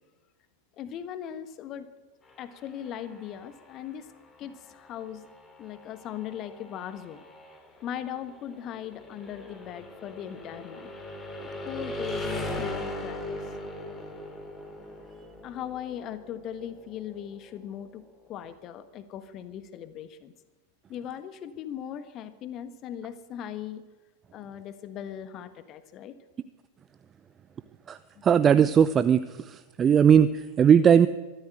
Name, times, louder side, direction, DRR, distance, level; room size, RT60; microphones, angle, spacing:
voice 1, 0.8-1.9 2.4-4.1 4.4-5.3 5.6-7.2 7.8-10.9 11.6-13.4 15.4-18.0 18.3-20.3 20.9-23.8 24.3-26.2 28.1-28.2, left 10 dB, 35° left, 12 dB, 1.4 m, -39 dB
sound 1, 2.2-18.0, left 1 dB, 15° left, 4.1 m, -40 dB
voice 2, 28.2-31.1, right 8 dB, 25° right, 14 dB, 0.7 m, -19 dB
23.5 x 13.5 x 8.9 m, 1.2 s
figure-of-eight pair, 90°, 0 cm